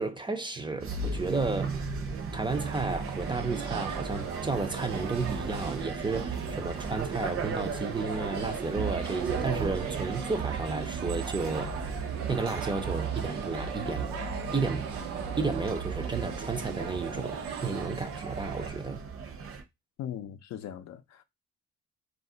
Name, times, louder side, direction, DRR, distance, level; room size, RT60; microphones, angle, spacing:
voice 1, 0.0-1.8 2.3-11.8 12.3-14.1 14.5-14.9 15.4-19.0, right 3 dB, 15° right, 0.5 m, -32 dB
sound 1, 0.8-19.6, right 5 dB, 45° right, 0.7 m, -36 dB
sound 2, 2.5-18.7, right 6 dB, 85° right, 0.7 m, -39 dB
voice 2, 20.0-21.2, left 10 dB, 65° left, 0.5 m, -39 dB
2.4 x 2.0 x 3.7 m
cardioid pair, 90°, 30 cm